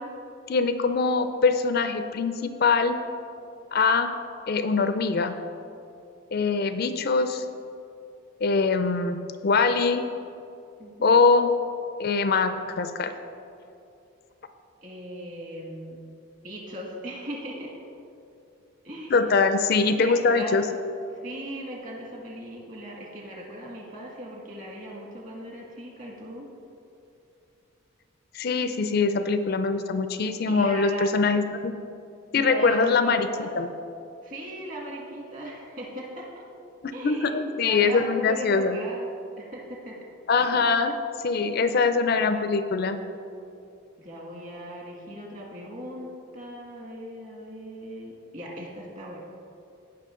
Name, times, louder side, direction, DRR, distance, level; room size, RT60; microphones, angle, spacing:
voice 1, 0.5-3.0 3.7-4.1 4.5-5.4 6.3-7.4 8.4-10.0 11.0-11.5 12.0-13.1 19.1-20.7 28.3-31.8 32.3-33.7 36.8-38.8 40.3-41.0 41.2-43.0, left 4 dB, 45° left, 9 dB, 0.4 m, -23 dB
voice 2, 10.8-11.2 14.8-16.0 16.4-17.9 18.8-19.2 20.0-20.6 21.2-26.5 30.5-31.1 32.4-33.5 34.2-36.4 36.9-37.3 37.6-39.1 39.4-40.0 41.5-41.7 44.0-49.2, right 1 dB, 40° right, -2 dB, 1.8 m, -38 dB
16.5 x 5.7 x 3.7 m, 2.7 s
head